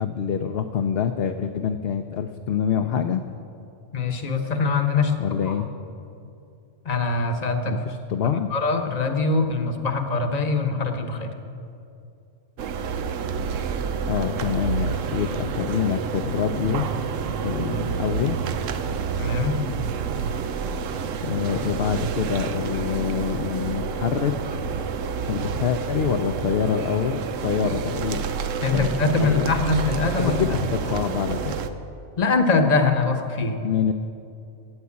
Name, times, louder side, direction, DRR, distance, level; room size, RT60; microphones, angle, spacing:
voice 1, 0.0-3.2 5.2-5.7 7.7-8.5 14.1-16.9 17.4-18.4 21.2-24.3 25.3-28.2 28.7-28.9 29.2-29.5 30.2-31.6 33.6-33.9, left 8 dB, 60° left, 6 dB, 0.8 m, -26 dB
voice 2, 3.9-5.5 6.8-7.7 8.5-11.3 19.2-19.6 28.6-30.4 32.2-33.6, left 3 dB, 35° left, 6 dB, 1.0 m, -23 dB
sound 1, 12.6-31.7, right 6 dB, 85° right, 1.1 m, -29 dB
14.5 x 8.2 x 8.4 m, 2.6 s
omnidirectional pair, 1.3 m